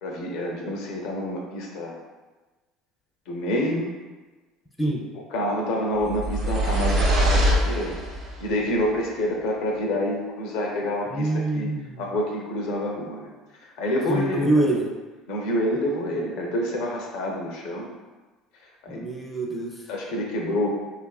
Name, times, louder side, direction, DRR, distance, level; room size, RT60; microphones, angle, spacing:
voice 1, 0.0-2.0 3.3-3.9 5.1-8.0 8.4-11.7 12.0-13.3 13.6-14.5 15.3-17.9 18.8-19.0 19.9-20.7, left 1 dB, 75° left, 0 dB, 0.5 m, -27 dB
sound 1, 6.0-8.4, equal, 60° right, 0.7 m, -23 dB
voice 2, 11.1-12.0 14.1-14.8 18.9-19.7, right 1 dB, 5° left, 0 dB, 0.5 m, -25 dB
2.8 x 2.4 x 2.3 m, 1.2 s
supercardioid pair, 85°, 0 cm